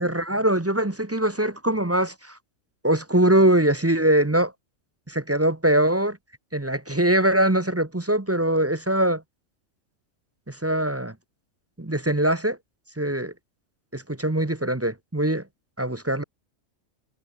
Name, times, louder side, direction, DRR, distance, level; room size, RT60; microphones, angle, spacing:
voice 1, 0.0-2.4 2.8-4.5 5.1-6.2 6.5-9.2 10.5-11.1 11.8-12.6 13.0-13.3 13.9-15.4 15.8-16.2, right 1 dB, 10° right, 0.8 m, -22 dB
omnidirectional pair, 1.4 m